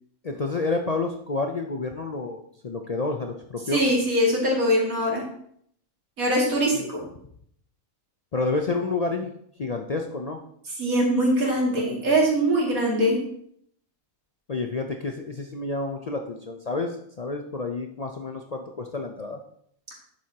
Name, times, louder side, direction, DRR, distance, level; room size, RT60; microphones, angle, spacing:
voice 1, 0.2-3.8 6.7-6.9 8.3-9.3 9.6-10.4 12.0-12.1 14.5-19.4, left 3 dB, 60° left, 4 dB, 0.4 m, -29 dB
voice 2, 3.7-5.2 6.2-7.0 10.8-13.2, equal, 75° right, -3 dB, 2.8 m, -22 dB
10.0 x 7.6 x 2.8 m, 0.68 s
omnidirectional pair, 1.5 m